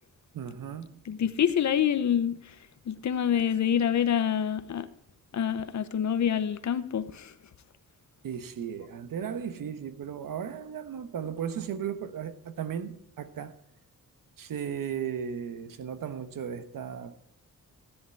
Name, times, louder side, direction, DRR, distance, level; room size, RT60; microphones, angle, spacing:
voice 1, 0.3-1.0 8.2-13.6 14.4-17.2, right 8 dB, 75° right, 1.1 m, -36 dB
voice 2, 1.1-2.4 2.9-4.9 5.3-7.3, left 9 dB, 55° left, 0.9 m, -26 dB
13.5 x 10.5 x 4.6 m
wide cardioid pair, 155°, 34 cm